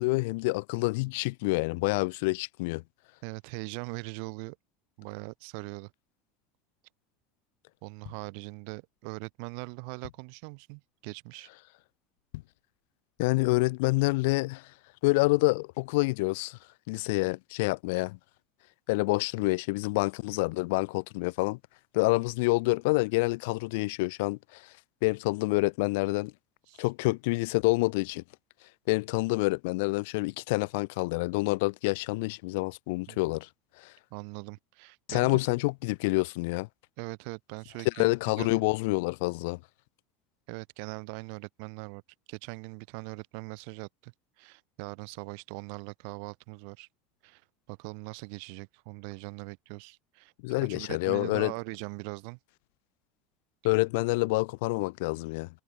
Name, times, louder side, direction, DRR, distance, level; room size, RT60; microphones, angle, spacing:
voice 1, 0.0-2.8 13.2-14.7 15.0-16.6 16.9-18.2 18.9-21.6 21.9-24.7 25.0-26.3 26.8-28.2 28.9-33.5 33.8-33.9 35.1-36.7 37.9-39.6 50.4-51.5 53.6-55.5, left 25 dB, 65° left, 0.3 m, -27 dB
voice 2, 3.2-4.6 5.0-5.9 7.8-11.5 26.7-26.8 33.1-33.3 34.1-35.4 37.0-38.1 38.4-38.6 40.5-42.0 42.3-46.9 47.2-47.4 47.7-50.3 50.6-52.4, right 40 dB or more, 55° right, 2.4 m, -41 dB
sound 1, 7.7-9.0 9.5-9.6 9.8-10.5 11.0-11.2 11.5-11.6 12.1-12.8 13.2-13.3, left 19 dB, 85° left, 2.0 m, -48 dB
cardioid pair, 170°, 0 cm